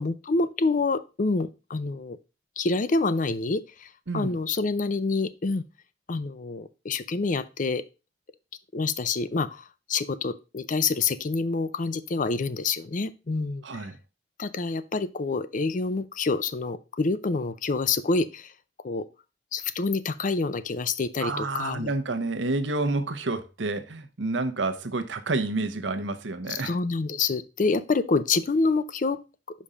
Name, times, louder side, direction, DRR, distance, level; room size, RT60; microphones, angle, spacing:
voice 1, 0.0-2.2 2.6-5.6 6.1-7.8 8.7-13.8 14.4-18.5 18.8-19.1 19.5-21.9 26.5-29.2, left 3 dB, 45° left, 0.5 m, -27 dB
voice 2, 13.6-14.0 21.2-26.8, right 2 dB, 80° right, 0.9 m, -29 dB
5.6 x 5.2 x 5.0 m
head